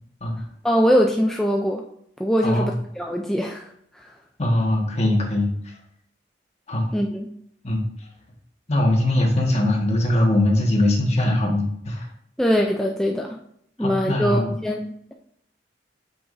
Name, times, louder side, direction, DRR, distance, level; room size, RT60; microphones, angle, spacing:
voice 1, 0.6-1.8 2.2-3.7 3.9-4.1 6.9-7.3 12.4-13.4 13.8-15.1, equal, 5° left, 0 dB, 0.5 m, -22 dB
voice 2, 2.4-2.7 4.4-5.7 6.7-6.9 7.6-7.8 8.7-12.1 13.8-14.5, left 1 dB, 35° left, 0 dB, 1.6 m, -21 dB
7.9 x 6.2 x 2.6 m, 0.70 s
head